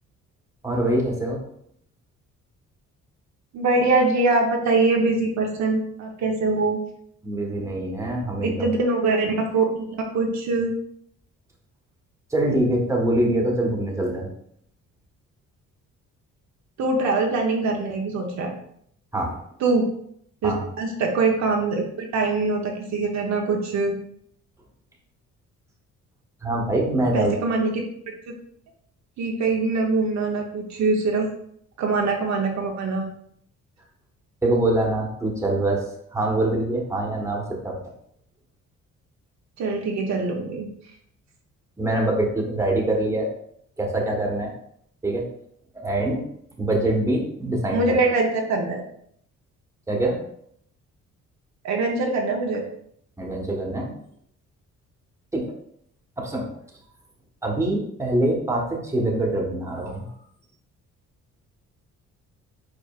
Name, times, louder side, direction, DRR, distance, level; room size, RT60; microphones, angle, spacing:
voice 1, 0.6-1.4 7.2-8.6 12.3-14.3 19.1-19.4 20.4-20.6 26.4-27.3 34.4-35.8 36.1-37.8 41.8-43.3 43.8-44.5 45.0-45.3 45.7-46.2 46.6-47.8 49.9-50.2 53.2-54.0 55.3-55.5 56.2-56.5 57.4-60.1, right 1 dB, 10° right, -2 dB, 1.3 m, -24 dB
voice 2, 3.5-6.8 8.4-10.7 16.8-18.5 19.6-19.9 20.4-24.0 27.1-27.8 28.3-28.4 29.2-31.3 31.8-33.1 39.6-40.7 47.7-48.8 51.6-52.6, right 3 dB, 65° right, 1 dB, 0.9 m, -23 dB
5.0 x 4.2 x 2.4 m, 0.69 s
cardioid pair, 90°, 30 cm